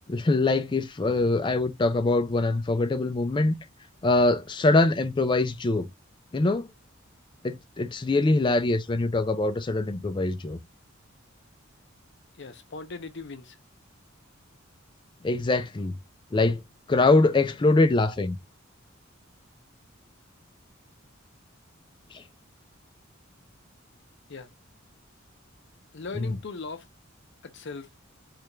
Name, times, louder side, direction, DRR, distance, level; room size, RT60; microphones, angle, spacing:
voice 1, 0.1-3.6 4.0-5.9 6.3-6.7 7.4-10.6 15.2-16.0 16.3-16.6 16.9-18.4 22.1-22.2 26.1-26.4, left 2 dB, 25° left, 0.4 m, -23 dB
voice 2, 12.4-13.6 24.3-24.5 25.9-26.9 27.4-27.9, left 4 dB, 60° left, 0.6 m, -39 dB
3.3 x 2.5 x 3.0 m
head